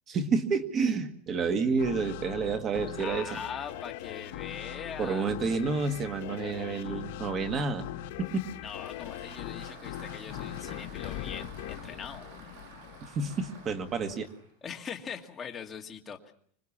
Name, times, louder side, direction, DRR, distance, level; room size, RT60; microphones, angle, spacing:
voice 1, 0.1-3.3 5.0-7.9 8.2-8.4 13.1-14.3, right 4 dB, 25° right, 8 dB, 1.7 m, -29 dB
sound 1, 1.8-13.0, left 13 dB, 65° left, 1.5 m, -41 dB
voice 2, 3.0-5.3 8.6-12.3 14.6-16.3, left 7 dB, 15° left, 2 dB, 2.0 m, -41 dB
sound 2, 6.2-14.1, left 12 dB, 45° left, 1.6 m, -47 dB
Applause, 8.5-14.5, right 3 dB, 60° right, 8.0 m, -51 dB
26.0 x 21.0 x 7.3 m, 0.63 s
supercardioid pair, 170°, 0 cm